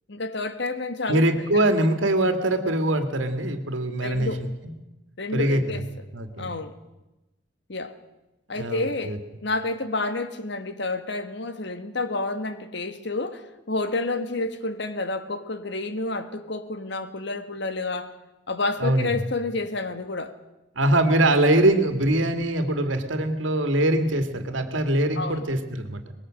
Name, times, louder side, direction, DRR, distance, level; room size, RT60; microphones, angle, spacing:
voice 1, 0.1-1.6 4.0-4.4 5.2-5.9 6.4-6.7 7.7-8.0 8.5-9.2 9.4-18.2 18.5-20.4 25.1-25.4, left 2 dB, 65° left, 1.5 m, -29 dB
voice 2, 1.1-4.5 5.3-5.6 6.1-6.5 8.6-9.2 18.8-19.1 20.8-26.0, right 1 dB, 90° right, 2.3 m, -23 dB
24.0 x 20.5 x 6.5 m
head